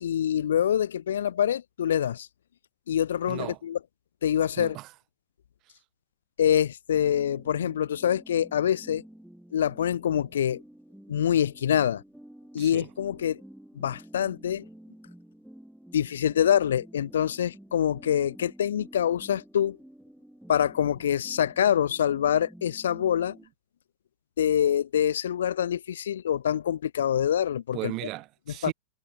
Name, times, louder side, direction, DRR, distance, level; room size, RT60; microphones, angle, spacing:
voice 1, 0.0-2.3 2.9-3.8 4.2-4.8 6.4-9.0 9.5-10.6 11.1-12.0 12.5-13.4 13.8-14.6 15.9-19.8 20.5-23.4 24.4-27.9 28.6-28.7, left 9 dB, 65° left, 0.4 m, -25 dB
voice 2, 3.3-3.6 4.6-4.9 12.6-12.9 27.7-28.7, right 19 dB, 40° right, 1.3 m, -36 dB
sound 1, 6.9-23.5, right 1 dB, ahead, 5.0 m, -50 dB
figure-of-eight pair, 90°, 0 cm